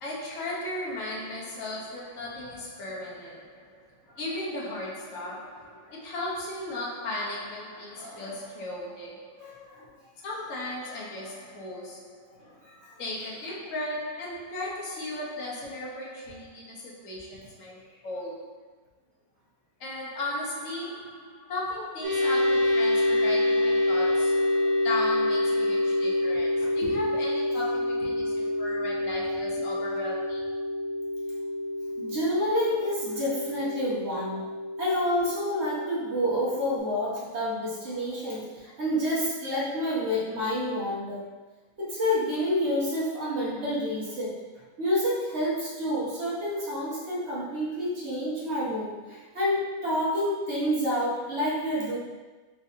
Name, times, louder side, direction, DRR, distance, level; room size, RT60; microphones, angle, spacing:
voice 1, 0.0-9.9 10.2-12.4 13.0-18.6 19.8-30.6, left 1 dB, 65° left, -4 dB, 1.3 m, -36 dB
voice 2, 9.4-9.9 12.4-12.9 28.4-28.5 32.0-34.5 34.8-41.3 41.8-44.3 44.8-52.0, equal, 50° right, -8 dB, 1.5 m, -29 dB
sound 1, 22.0-36.8, left 1 dB, 85° right, 1.6 m, -27 dB
4.5 x 3.9 x 2.7 m, 1.2 s
omnidirectional pair, 1.5 m